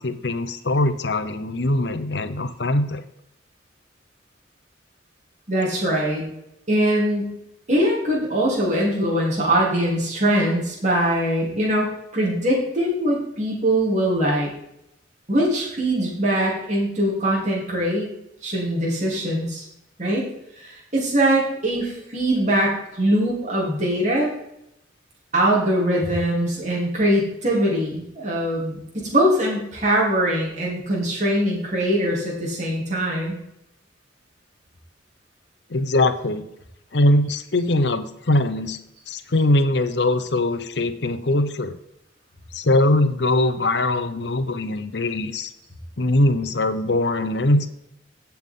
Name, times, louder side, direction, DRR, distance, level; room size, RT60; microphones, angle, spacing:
voice 1, 0.0-3.0 35.7-36.4 36.9-38.8 39.1-41.8 42.5-45.5 46.0-47.7, left 1 dB, 65° left, 10 dB, 0.8 m, -21 dB
voice 2, 5.5-6.3 6.7-7.3 7.7-14.5 15.3-18.1 18.4-19.6 20.0-20.3 20.6-24.3 25.3-33.4, right 1 dB, 40° right, -4 dB, 3.4 m, -22 dB
16.5 x 5.9 x 3.8 m, 0.81 s
head